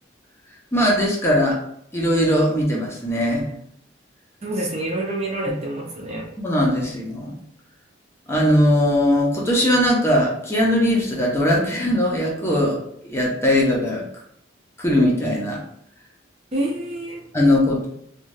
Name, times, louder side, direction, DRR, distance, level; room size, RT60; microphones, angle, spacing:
voice 1, 0.7-1.6 1.9-3.5 6.4-7.3 8.3-14.0 14.8-15.6 17.3-17.9, left 1 dB, 15° left, -3 dB, 0.6 m, -20 dB
voice 2, 4.4-6.2 16.5-17.2, right 1 dB, 35° right, -1 dB, 0.6 m, -27 dB
2.6 x 2.3 x 3.2 m, 0.72 s
head